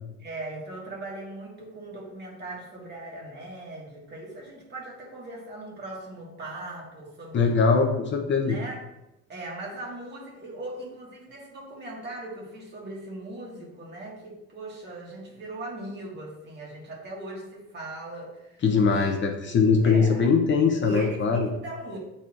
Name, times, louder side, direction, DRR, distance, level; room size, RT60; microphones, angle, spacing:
voice 1, 0.2-7.6 8.4-8.8 9.3-19.2 19.4-20.3 20.7-22.0, right 2 dB, 35° right, -3 dB, 1.7 m, -39 dB
voice 2, 7.3-8.5 18.6-21.5, left 5 dB, 40° left, 3 dB, 0.7 m, -21 dB
9.0 x 4.2 x 2.5 m, 0.91 s
cardioid pair, 150°, 29 cm